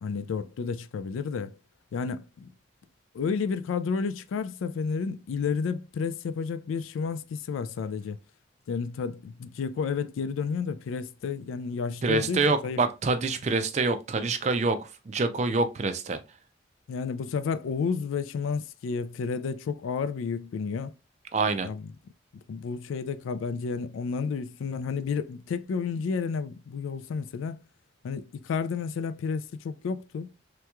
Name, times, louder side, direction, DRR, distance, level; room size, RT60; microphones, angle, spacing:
voice 1, 0.0-1.6 1.9-2.5 3.1-8.2 8.7-12.8 16.9-20.9 21.6-21.9 22.3-27.6 28.0-30.3, left 5 dB, 80° left, 0.3 m, -31 dB
voice 2, 12.0-16.2 21.3-21.7, right 3 dB, 35° right, 0.4 m, -26 dB
3.3 x 3.0 x 2.2 m
head